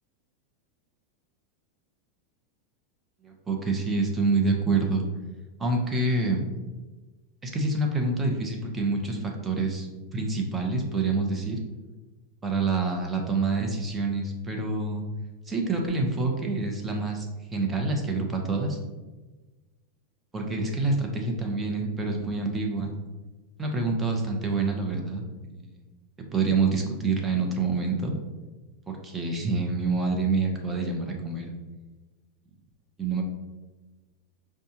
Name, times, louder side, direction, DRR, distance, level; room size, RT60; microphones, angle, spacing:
voice 1, 3.2-5.0 5.6-6.4 7.4-11.6 12.4-15.0 15.5-17.3 17.5-18.8 20.3-22.9 23.6-25.2 25.5-25.8 26.3-28.1 28.9-31.5 33.0-33.2, right 3 dB, 20° right, 1 dB, 0.8 m, -27 dB
5.3 x 2.3 x 2.8 m, 1.2 s
hypercardioid pair, 105°, 0 cm